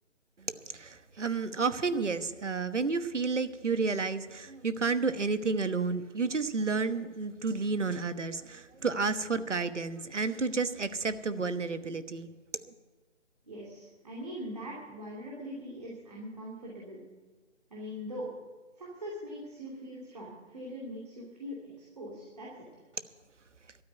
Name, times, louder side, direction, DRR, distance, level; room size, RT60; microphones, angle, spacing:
voice 1, 0.4-12.3, right 4 dB, 75° right, 12 dB, 1.2 m, -31 dB
voice 2, 13.4-17.0 17.7-18.3 18.8-22.6, equal, 35° right, -4 dB, 2.7 m, -42 dB
12.5 x 9.2 x 9.2 m, 1.3 s
figure-of-eight pair, 170°, 36 cm